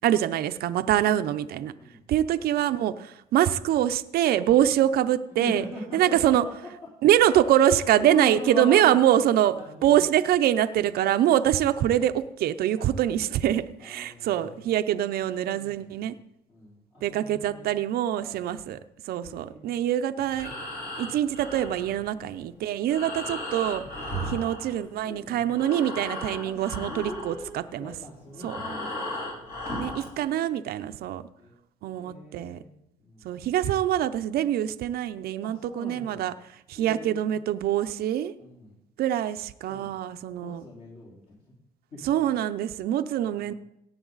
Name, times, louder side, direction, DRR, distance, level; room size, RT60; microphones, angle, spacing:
voice 1, 0.0-1.7 2.1-5.6 5.9-6.4 7.0-9.5 9.8-16.1 17.0-18.8 19.1-20.5 21.0-23.8 24.3-27.9 28.4-28.6 29.8-31.2 31.8-32.6 33.2-36.3 36.8-38.3 39.0-40.6 42.0-43.5, right 11 dB, 65° right, 10 dB, 0.6 m, -24 dB
voice 2, 2.4-2.8 4.6-4.7 5.4-6.7 7.4-9.2 9.5-10.0 11.5-11.6 12.8-13.4 13.8-14.7 15.5-16.1 16.5-17.8 18.2-18.7 19.1-19.8 24.3-24.4 25.0-25.5 26.4-27.5 27.8-29.6 30.2-30.3 30.8-30.9 31.4-31.5 31.9-32.7 33.0-33.3 35.4-36.3 36.7-37.3 38.4-38.8 39.7-40.1 40.4-41.4 41.9-42.3 43.2-43.6, left 2 dB, 40° left, -8 dB, 4.1 m, -41 dB
Breathing, 20.2-25.2 25.5-30.1, left 1 dB, 60° left, 5.1 m, -36 dB
17.5 x 7.7 x 4.0 m, 0.81 s
cardioid pair, 110°, 17 cm